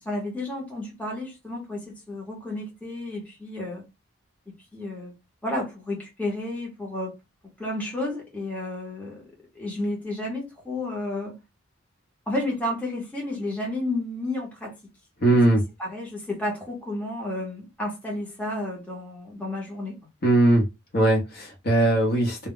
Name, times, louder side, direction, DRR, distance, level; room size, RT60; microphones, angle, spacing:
voice 1, 0.0-3.8 4.7-5.1 5.4-7.1 7.6-9.2 9.5-11.4 12.3-14.8 15.8-20.0, left 1 dB, 5° left, 0.7 m, -31 dB
voice 2, 15.2-15.6 20.2-20.6 20.9-22.5, right 1 dB, 50° left, 0.8 m, -20 dB
2.2 x 2.0 x 3.6 m
head